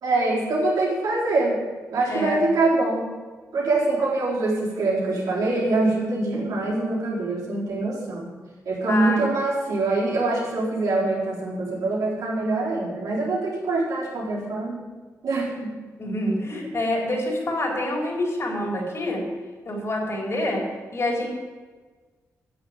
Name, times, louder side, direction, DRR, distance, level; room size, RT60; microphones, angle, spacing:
voice 1, 0.0-1.6 1.9-3.1 3.5-8.3 8.7-14.8 15.2-15.7, right 2 dB, 85° right, -5 dB, 4.2 m, -24 dB
voice 2, 8.9-9.3 16.0-19.2 19.6-20.6 20.9-21.3, left 1 dB, 50° left, -2 dB, 4.1 m, -26 dB
9.3 x 7.2 x 9.0 m, 1.4 s
cardioid pair, 70°, 6 cm